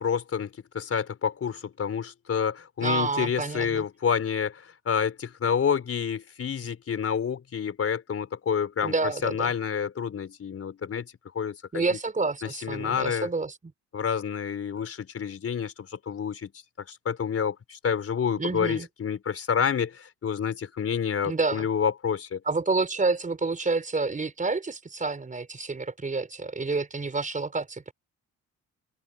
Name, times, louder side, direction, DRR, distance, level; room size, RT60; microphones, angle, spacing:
voice 1, 0.0-12.0 12.4-13.3 13.9-16.5 16.8-22.4, left 7 dB, 50° left, 4.7 m, -29 dB
voice 2, 2.8-3.8 8.8-9.5 11.7-13.5 18.4-18.9 21.2-21.7 22.4-27.9, right 3 dB, 25° right, 4.8 m, -29 dB
open air
cardioid pair, 90°, 30 cm